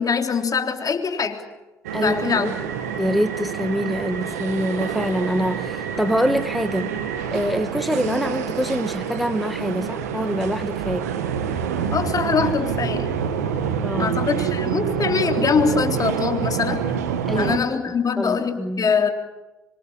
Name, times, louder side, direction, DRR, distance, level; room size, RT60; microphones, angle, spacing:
voice 1, 0.0-1.4 1.9-2.5 11.9-13.1 14.0-16.8 17.3-19.1, left 5 dB, 45° left, 5 dB, 3.6 m, -23 dB
sound 1, 1.8-17.6, right 7 dB, 85° right, 1.8 m, -27 dB
voice 2, 1.9-2.5 3.0-6.9 7.3-11.1 13.8-14.2 17.3-17.5 18.2-18.9, equal, ahead, 9 dB, 1.8 m, -25 dB
25.5 x 24.5 x 8.8 m, 1.1 s
hypercardioid pair, 45°, 8 cm